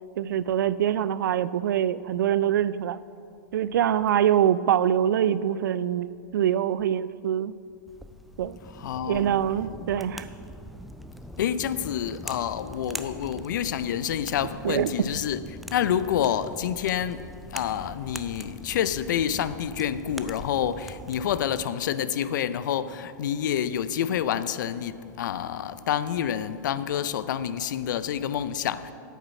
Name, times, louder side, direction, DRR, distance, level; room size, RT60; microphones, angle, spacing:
voice 1, 0.2-3.0 3.5-7.6 8.4-8.6 9.1-10.3 14.6-14.9, right 10 dB, 80° right, 0.4 m, -24 dB
sound 1, 7.9-21.7, equal, ahead, 0.4 m, -42 dB
voice 2, 8.7-9.3 11.4-15.4 15.7-17.2 17.5-28.9, left 9 dB, 75° left, 0.5 m, -28 dB
8.2 x 8.2 x 5.9 m
hypercardioid pair, 115°, 10 cm